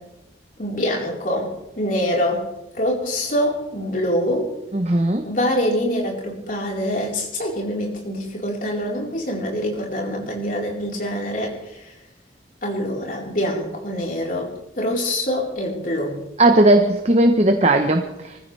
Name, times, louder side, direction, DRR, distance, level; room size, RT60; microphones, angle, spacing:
voice 1, 0.6-2.4 2.7-4.5 5.2-11.5 12.6-14.5 14.8-16.2, equal, 45° left, -2 dB, 4.3 m, -24 dB
voice 2, 4.7-5.2 16.4-18.4, right 1 dB, 35° right, 5 dB, 1.0 m, -17 dB
24.5 x 15.0 x 3.4 m, 0.91 s
head